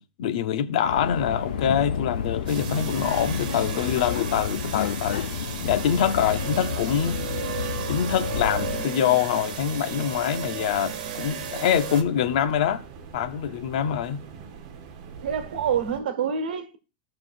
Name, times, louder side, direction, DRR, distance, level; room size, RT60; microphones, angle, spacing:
voice 1, 0.0-5.3 5.6-7.2 7.9-12.8 13.1-14.2, left 9 dB, 50° left, 0.7 m, -25 dB
Subway metro underground, 0.8-8.8, left 9 dB, 85° left, 0.5 m, -31 dB
sound 1, 1.0-16.0, right 5 dB, 40° right, 1.1 m, -43 dB
sound 2, 2.5-12.0, right 7 dB, 60° right, 1.5 m, -34 dB
voice 2, 15.2-16.8, right 7 dB, 85° right, 1.4 m, -27 dB
16.0 x 5.7 x 2.5 m
supercardioid pair, 175°, 5 cm